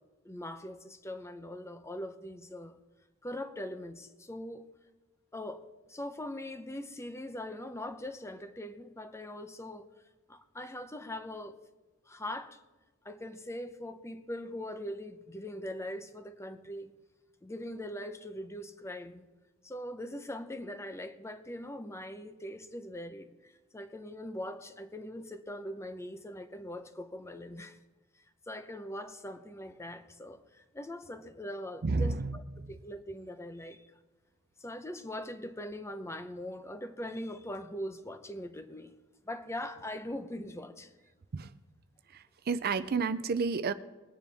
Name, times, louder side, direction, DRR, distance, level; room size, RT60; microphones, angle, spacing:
voice 1, 0.2-2.8 3.2-4.7 5.3-9.9 10.3-11.5 12.1-12.6 13.0-16.9 17.4-19.3 19.6-27.8 28.5-32.4 32.7-33.8 34.6-38.9 39.3-40.9, left 1 dB, 15° left, 0.8 m, -41 dB
voice 2, 31.8-32.7 41.3-41.5 42.1-43.7, right 4 dB, 50° right, 0.5 m, -31 dB
21.0 x 9.8 x 3.5 m
head